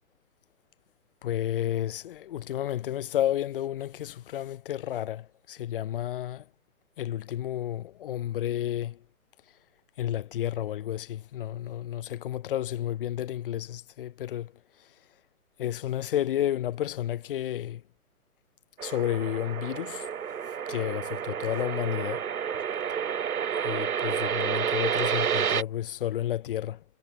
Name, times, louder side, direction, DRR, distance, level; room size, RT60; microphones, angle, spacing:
voice 1, 1.2-6.5 7.0-9.0 10.0-14.5 14.8-14.9 15.6-17.8 18.8-20.1 20.7-22.3 23.6-26.8, left 12 dB, 35° left, 3.2 m, -31 dB
sound 1, 18.8-25.6, right 8 dB, 75° right, 0.7 m, -30 dB
figure-of-eight pair, 130°, 44 cm